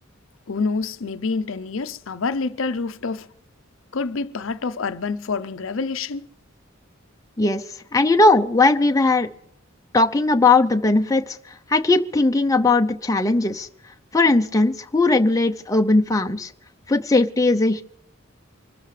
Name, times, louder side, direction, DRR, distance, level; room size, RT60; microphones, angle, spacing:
voice 1, 0.5-3.3 3.9-6.3, left 4 dB, 70° left, 0.6 m, -27 dB
voice 2, 7.9-9.3 9.9-11.4 11.7-13.7 14.1-16.5 16.9-17.8, left 2 dB, 15° left, 0.6 m, -18 dB
25.0 x 13.5 x 3.3 m
head